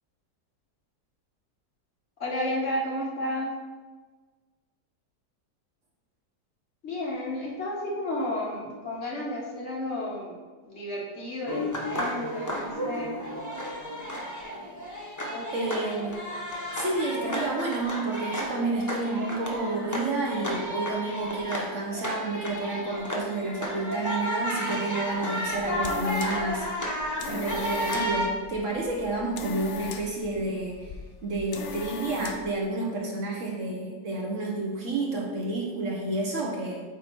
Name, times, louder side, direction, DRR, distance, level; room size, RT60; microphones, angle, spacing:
voice 1, 2.2-3.5 6.8-10.4 10.6-13.1 15.2-15.9, left 1 dB, 45° left, -4 dB, 1.3 m, -32 dB
sound 1, 11.5-28.3, equal, 20° left, 0.5 m, -32 dB
voice 2, 15.5-16.2 16.7-26.7 27.3-30.9 31.2-36.8, right 2 dB, 55° right, -2 dB, 1.1 m, -30 dB
sound 2, 25.4-32.6, left 6 dB, 80° left, 0.6 m, -39 dB
8.4 x 2.8 x 4.5 m, 1.4 s
omnidirectional pair, 1.7 m